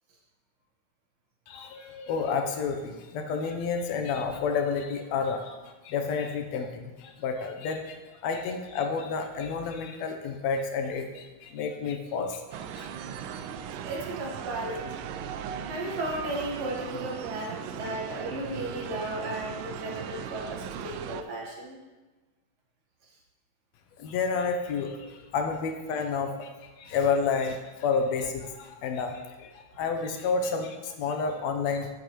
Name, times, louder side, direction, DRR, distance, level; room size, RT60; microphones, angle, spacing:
voice 1, 1.5-12.9 24.0-26.5 26.8-31.9, left 5 dB, 70° left, 5 dB, 1.7 m, -30 dB
sound 1, 12.5-21.2, right 8 dB, 90° right, 2.2 m, -38 dB
voice 2, 13.8-14.9 15.7-21.8 23.0-23.1, right 1 dB, 55° right, -2 dB, 2.3 m, -35 dB
11.5 x 7.9 x 3.0 m, 1.2 s
omnidirectional pair, 3.7 m